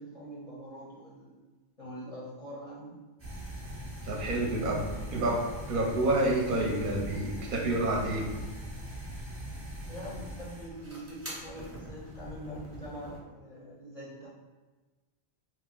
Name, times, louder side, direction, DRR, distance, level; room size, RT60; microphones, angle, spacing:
voice 1, 0.0-1.4 1.8-3.0 4.0-4.6 9.9-14.3, equal, 40° left, -7 dB, 0.5 m, -44 dB
sound 1, 3.2-13.2, equal, 15° right, 0.6 m, -42 dB
voice 2, 4.0-4.8 5.1-5.4 5.7-8.3, right 2 dB, 60° right, -1 dB, 0.6 m, -28 dB
2.8 x 2.0 x 3.6 m, 1.3 s
omnidirectional pair, 1.1 m